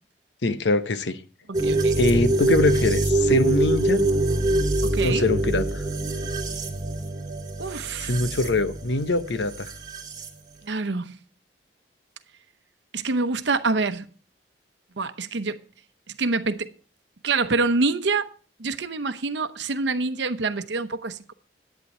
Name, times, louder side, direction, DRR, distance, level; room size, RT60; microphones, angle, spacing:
voice 1, 0.4-1.2 2.0-4.0 5.0-5.8 8.0-9.7, left 2 dB, 75° left, 0.8 m, -23 dB
sound 1, 1.5-10.3, right 2 dB, 20° right, 2.3 m, -24 dB
voice 2, 1.5-1.9 4.8-5.3 7.6-8.1 10.6-11.2 12.9-14.1 15.0-15.6 16.1-16.7 17.2-18.3 18.6-21.3, right 3 dB, 75° right, 0.8 m, -26 dB
11.0 x 9.1 x 4.3 m
head